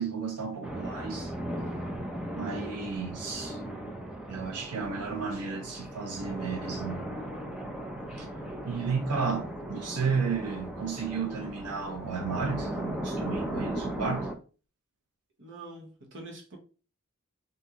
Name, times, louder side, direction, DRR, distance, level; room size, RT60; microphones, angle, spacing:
voice 1, 0.0-1.3 2.3-3.6 4.3-7.1 8.1-8.3 8.6-14.3, right 5 dB, 90° right, 0.6 m, -33 dB
sound 1, 0.6-14.3, right 1 dB, 5° right, 0.4 m, -37 dB
voice 2, 15.4-16.6, right 2 dB, 55° right, 1.0 m, -45 dB
2.9 x 2.6 x 3.5 m
head